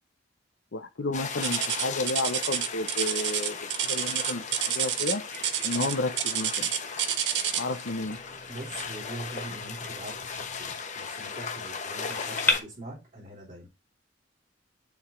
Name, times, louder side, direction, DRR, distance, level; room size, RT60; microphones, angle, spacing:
voice 1, 0.7-4.4 4.7-5.2 5.6-6.7 7.6-8.2, left 2 dB, 75° left, 0.7 m, -31 dB
sound 1, 1.1-12.6, left 5 dB, 45° left, 0.9 m, -37 dB
Bird vocalization bird call bird song, 1.4-12.5, left 2 dB, 10° left, 1.4 m, -39 dB
sound 2, 1.4-7.8 8.8-9.0 9.6-9.7 10.4-10.5, right 9 dB, 70° right, 0.6 m, -29 dB
voice 2, 8.5-13.7, right 1 dB, 45° right, 3.2 m, -42 dB
7.2 x 3.4 x 4.3 m
head